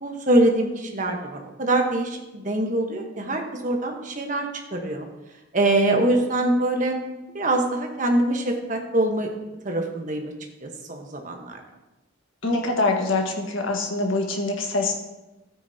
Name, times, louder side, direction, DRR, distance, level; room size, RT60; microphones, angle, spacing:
voice 1, 0.0-5.1 5.5-7.0 7.3-9.3 9.6-10.3 10.6-11.6, right 1 dB, 40° right, 3 dB, 1.2 m, -24 dB
voice 2, 12.4-14.9, left 2 dB, 75° left, 1 dB, 1.5 m, -24 dB
13.0 x 9.2 x 2.8 m, 1.0 s
head